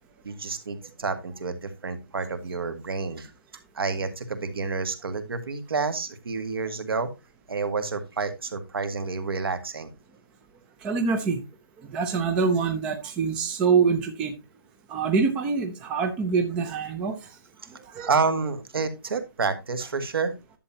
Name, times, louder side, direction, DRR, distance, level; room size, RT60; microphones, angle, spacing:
voice 1, 0.2-3.3 3.7-7.1 7.5-9.9 18.0-20.3, right 4 dB, 65° right, 8 dB, 1.9 m, -29 dB
voice 2, 10.8-11.4 11.9-14.3 14.9-17.2 17.9-18.1, right 5 dB, 10° right, 6 dB, 0.5 m, -25 dB
11.0 x 7.5 x 2.8 m, 0.25 s
hypercardioid pair, 165°, 13 cm